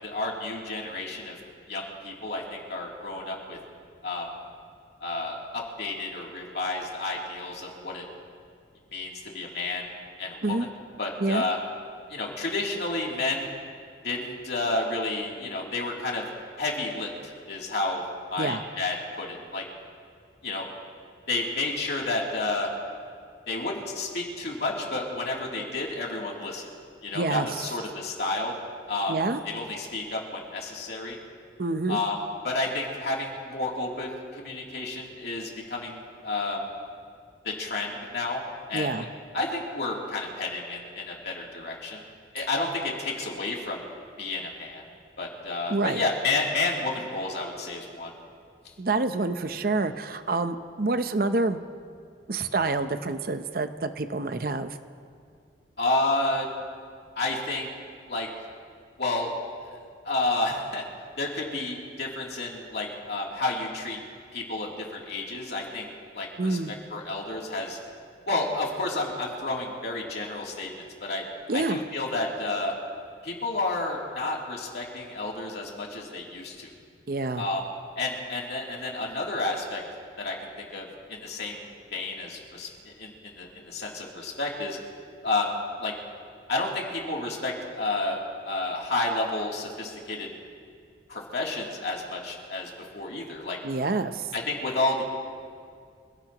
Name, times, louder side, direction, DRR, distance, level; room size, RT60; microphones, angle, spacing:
voice 1, 0.0-1.3 1.7-3.6 4.0-4.3 5.0-8.1 8.9-9.9 10.2-10.7 11.0-11.6 12.1-13.5 14.0-16.3 16.6-18.0 18.3-19.6 20.4-20.7 21.3-22.7 23.5-26.7 27.0-28.5 28.9-29.2 29.5-31.2 31.9-32.2 32.4-36.7 37.4-38.4 38.7-38.9 39.3-42.0 42.3-43.8 44.2-44.8 45.2-48.1 55.8-56.5 57.2-57.7 58.1-58.3 59.0-59.3 59.6-59.7 60.0-60.8 61.2-64.0 64.3-65.9 66.1-66.6 66.9-67.8 68.3-70.7 71.0-71.2 71.5-72.7 73.2-76.7 77.4-77.6 78.0-79.8 80.2-84.8 85.2-85.5 85.8-85.9 86.5-88.2 88.4-90.3 91.1-93.6 94.3-95.0, left 2 dB, 65° left, -3 dB, 3.1 m, -30 dB
voice 2, 27.1-27.6 29.1-29.4 31.6-32.0 38.7-39.0 42.4-42.5 45.7-46.0 48.8-51.6 52.3-54.8 66.4-66.7 71.5-71.8 77.1-77.4 93.6-94.3, right 3 dB, 55° right, 9 dB, 0.7 m, -27 dB
27.0 x 16.5 x 3.0 m, 2.2 s
head